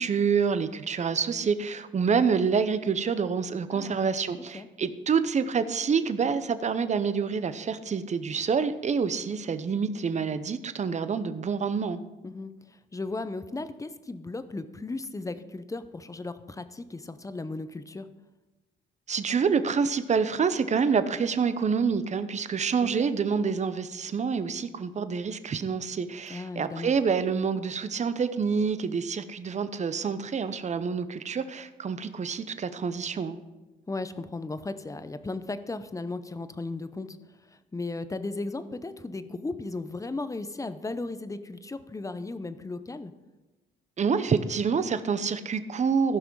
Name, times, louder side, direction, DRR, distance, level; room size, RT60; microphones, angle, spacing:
voice 1, 0.0-12.0 19.1-33.4 44.0-46.2, right 6 dB, 35° right, 12 dB, 0.7 m, -27 dB
voice 2, 12.9-18.1 22.8-23.1 26.3-27.0 33.9-37.2 37.7-43.1, left 3 dB, 15° left, 12 dB, 0.7 m, -36 dB
15.0 x 6.0 x 4.7 m, 1.1 s
cardioid pair, 90°, 20 cm